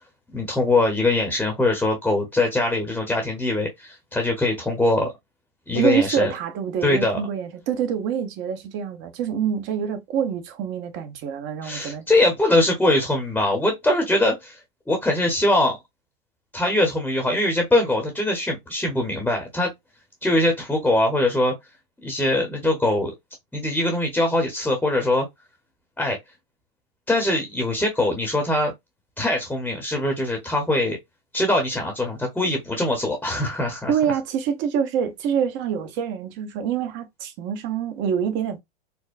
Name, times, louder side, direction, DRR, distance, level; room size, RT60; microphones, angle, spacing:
voice 1, 0.3-5.1 5.7-6.3 6.8-7.2 11.6-14.6 14.9-15.8 16.5-19.7 20.2-21.5 22.0-23.1 23.5-25.3 26.0-26.2 27.1-28.7 29.2-31.0 31.3-33.9, left 1 dB, 5° left, 1.0 m, -22 dB
voice 2, 5.7-12.0 33.9-38.6, right 8 dB, 40° right, 0.9 m, -26 dB
4.4 x 2.2 x 2.5 m
hypercardioid pair, 115°, 29 cm